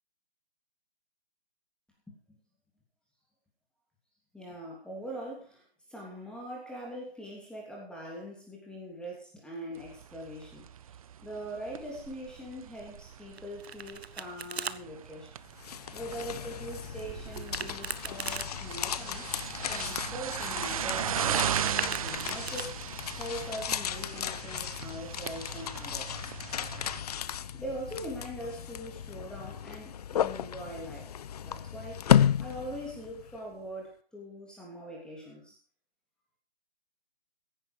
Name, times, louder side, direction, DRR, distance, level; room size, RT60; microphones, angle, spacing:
voice 1, 2.1-2.4 4.3-11.0 11.2-15.4 15.9-19.3 19.7-21.5 21.9-22.8 23.2-26.2 27.5-31.1 31.4-35.6, equal, 5° left, -2 dB, 3.2 m, -42 dB
sound 1, 9.8-27.0, right 9 dB, 35° right, 0.5 m, -38 dB
Domestic sounds home sounds, 13.4-14.8 17.3-18.5 21.0-22.7, right 6 dB, 75° right, 1.2 m, -38 dB
sound 2, 15.4-33.4, left 9 dB, 35° left, 0.6 m, -33 dB
15.5 x 10.0 x 5.0 m, 0.37 s
figure-of-eight pair, 140°, 32 cm